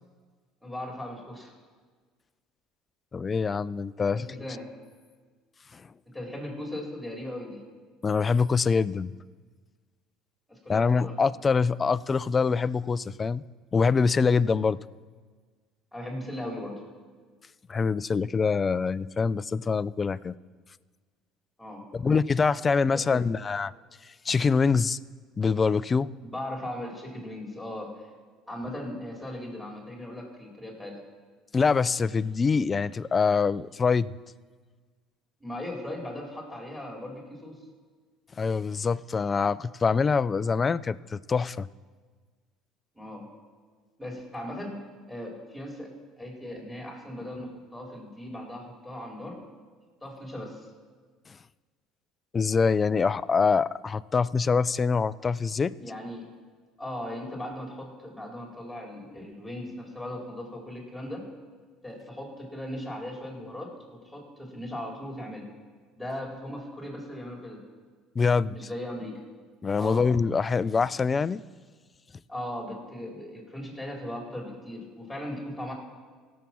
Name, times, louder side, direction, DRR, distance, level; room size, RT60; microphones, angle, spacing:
voice 1, 0.6-1.5 4.1-4.7 6.1-7.6 10.5-11.2 15.9-16.8 21.6-21.8 22.9-23.2 26.2-28.0 28.5-31.0 35.4-37.6 42.9-43.3 44.0-44.8 45.1-45.9 46.2-49.4 50.0-50.7 55.8-56.3 56.8-61.2 61.8-65.4 65.9-67.6 68.2-69.2 69.8-70.0 72.3-75.7, left 1 dB, ahead, -1 dB, 4.4 m, -38 dB
voice 2, 3.1-4.3 5.7-5.8 8.0-9.1 10.7-13.4 13.7-14.8 17.7-20.3 21.9-23.7 24.3-25.0 25.4-26.1 31.5-34.1 38.4-41.7 52.3-55.7 68.2-68.6 69.6-71.4, left 5 dB, 25° left, 18 dB, 0.4 m, -24 dB
17.0 x 7.4 x 6.1 m, 1.5 s
supercardioid pair, 95°, 0 cm